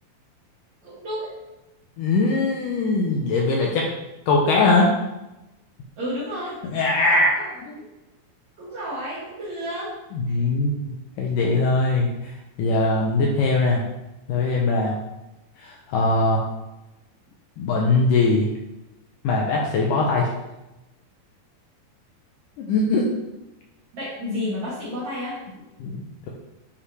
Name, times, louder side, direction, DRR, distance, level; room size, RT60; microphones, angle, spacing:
voice 1, 0.8-1.3 6.0-6.6 7.4-7.5 7.8-7.9 8.6-10.0 10.3-10.4 23.9-25.6, left 1 dB, 50° right, -11 dB, 3.5 m, -31 dB
voice 2, 2.0-3.9 4.3-4.9 6.6-7.4 10.1-12.3 12.6-13.8 14.3-15.0 15.6-16.4 17.6-18.5 19.2-20.3 22.6-23.1 25.8-26.0, left 3 dB, 75° left, -2 dB, 2.2 m, -21 dB
9.8 x 5.5 x 3.3 m, 0.97 s
omnidirectional pair, 4.3 m